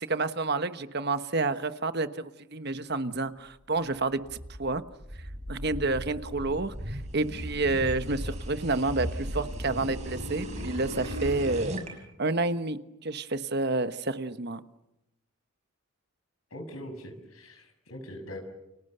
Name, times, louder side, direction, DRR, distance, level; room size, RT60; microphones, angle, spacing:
voice 1, 0.0-4.8 5.5-11.8 12.2-14.6, right 3 dB, 50° right, 10 dB, 1.2 m, -29 dB
sound 1, 4.3-11.9, equal, 30° right, 5.6 m, -37 dB
voice 2, 16.5-18.4, left 1 dB, 80° left, 6 dB, 6.9 m, -42 dB
30.0 x 28.5 x 6.8 m, 0.89 s
head